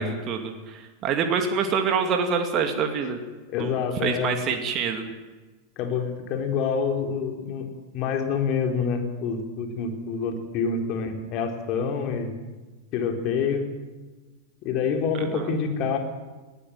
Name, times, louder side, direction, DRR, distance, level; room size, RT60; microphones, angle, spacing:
voice 1, 0.0-3.2 3.6-3.7 4.0-5.0 15.1-15.5, right 6 dB, 35° right, 5 dB, 2.4 m, -26 dB
voice 2, 3.5-4.4 5.8-12.3 12.9-13.7 14.6-16.0, left 6 dB, 40° left, 4 dB, 4.1 m, -27 dB
21.0 x 16.5 x 9.2 m, 1.3 s
figure-of-eight pair, 90°, 0 cm